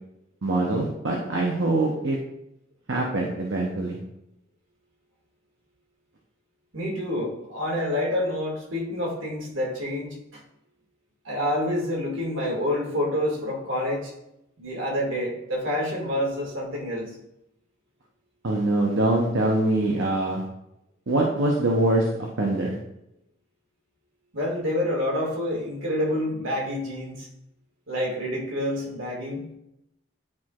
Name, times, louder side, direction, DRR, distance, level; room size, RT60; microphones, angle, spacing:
voice 1, 0.4-2.2 2.9-4.0 18.4-20.4 21.1-22.8, right 2 dB, 70° right, -1 dB, 0.8 m, -24 dB
voice 2, 6.7-10.4 11.2-14.1 14.6-17.2 24.3-27.3 27.9-29.4, left 1 dB, 85° right, -2 dB, 1.9 m, -28 dB
9.6 x 4.5 x 2.4 m, 0.84 s
head